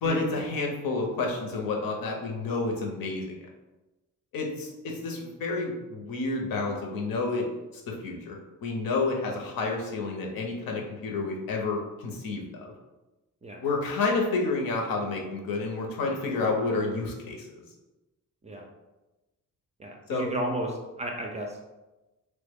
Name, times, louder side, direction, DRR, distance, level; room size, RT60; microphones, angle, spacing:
voice 1, 0.0-3.3 4.3-7.5 7.7-12.7 13.6-17.6 20.1-20.3, left 3 dB, 80° left, 1 dB, 0.7 m, -30 dB
voice 2, 19.8-20.7 21.0-21.6, right 1 dB, 20° right, 1 dB, 0.3 m, -33 dB
3.1 x 2.1 x 3.4 m, 1.1 s
wide cardioid pair, 140°, 34 cm